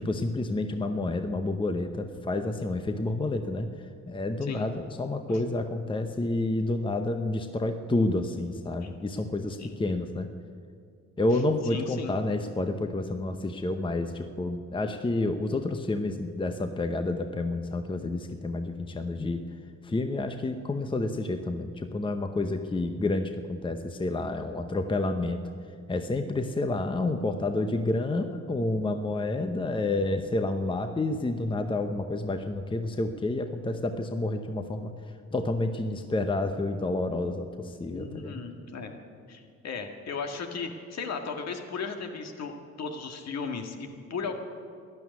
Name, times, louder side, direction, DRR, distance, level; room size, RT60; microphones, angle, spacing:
voice 1, 0.0-10.3 11.2-19.4 19.8-25.4 25.9-34.9 35.3-38.4, left 2 dB, 15° left, 8 dB, 0.8 m, -29 dB
voice 2, 11.7-12.2 37.9-38.9 39.3-44.3, left 5 dB, 60° left, 4 dB, 1.9 m, -36 dB
12.0 x 11.0 x 9.4 m, 2.2 s
cardioid pair, 90°, 30 cm